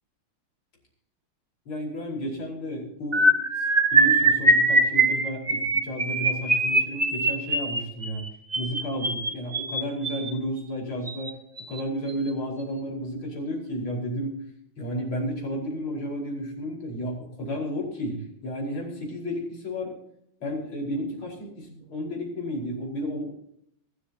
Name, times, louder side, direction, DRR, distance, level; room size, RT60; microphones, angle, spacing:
voice 1, 1.7-8.2 8.6-11.3 11.7-14.4 14.8-20.0 20.4-23.3, equal, 80° left, -2 dB, 5.9 m, -32 dB
sound 1, 3.1-10.3 11.1-11.3 11.6-11.8 12.1-12.3, right 2 dB, 20° right, 1.5 m, -22 dB
22.0 x 13.0 x 2.9 m, 0.74 s
omnidirectional pair, 2.3 m